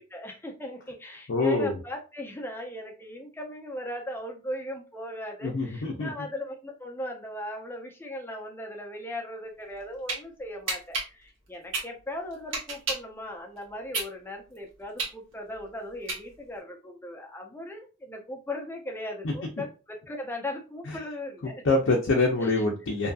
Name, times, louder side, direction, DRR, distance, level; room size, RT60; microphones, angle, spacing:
voice 1, 0.0-21.5 22.4-22.6, left 1 dB, 10° left, 1 dB, 0.5 m, -38 dB
voice 2, 1.3-1.8 5.4-6.1 21.6-23.1, left 3 dB, 65° left, 0 dB, 0.5 m, -25 dB
sound 1, 9.6-10.2 10.7-13.1 13.6-16.6, right 3 dB, 80° right, 1.1 m, -32 dB
2.6 x 2.5 x 2.3 m, 0.33 s
head